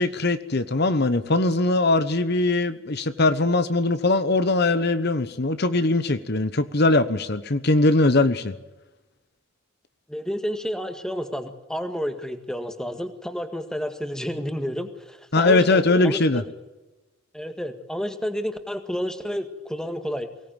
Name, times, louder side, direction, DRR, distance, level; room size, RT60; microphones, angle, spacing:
voice 1, 0.0-8.5 15.3-16.4, left 2 dB, 50° left, 11 dB, 1.1 m, -21 dB
voice 2, 10.1-16.4 17.3-20.3, equal, 5° left, 7 dB, 1.8 m, -30 dB
23.5 x 18.0 x 9.1 m, 1.1 s
head